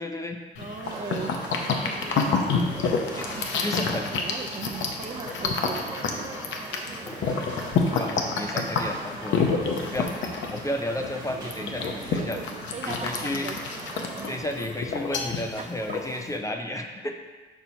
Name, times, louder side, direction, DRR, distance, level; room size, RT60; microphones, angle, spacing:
voice 1, 0.0-0.4 2.0-2.8 3.1-3.3 3.6-4.1 7.0-7.6 8.0-9.4 9.8-10.2 10.5-12.4 12.8-13.5 14.3-17.1, left 1 dB, 15° left, 4 dB, 0.5 m, -33 dB
sound 1, 0.6-16.4, left 4 dB, 75° left, 0.7 m, -29 dB
voice 2, 0.6-1.4 3.3-5.8 6.2-6.3 11.7-12.4 12.7-13.6 14.0-14.1 15.3-16.0, right 5 dB, 35° right, 4 dB, 0.6 m, -39 dB
sound 2, 0.8-14.4, right 2 dB, 20° right, 1.2 m, -40 dB
4.5 x 4.0 x 5.7 m, 1.3 s
cardioid pair, 90°, 20 cm